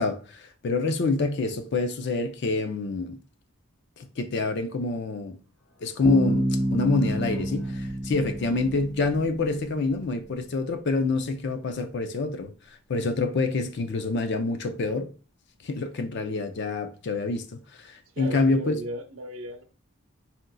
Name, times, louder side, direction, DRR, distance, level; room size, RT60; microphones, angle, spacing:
voice 1, 0.0-3.2 4.0-5.4 5.8-15.1 15.6-18.7, left 3 dB, 55° left, 0.4 m, -27 dB
sound 1, 5.6-11.2 11.5-11.6 11.7-11.8 12.1-12.2, left 1 dB, 70° left, 0.9 m, -48 dB
Bass guitar, 6.0-9.8, right 1 dB, 5° left, 0.6 m, -28 dB
voice 2, 18.1-19.6, right 1 dB, 80° right, 0.8 m, -36 dB
4.3 x 3.7 x 2.2 m
head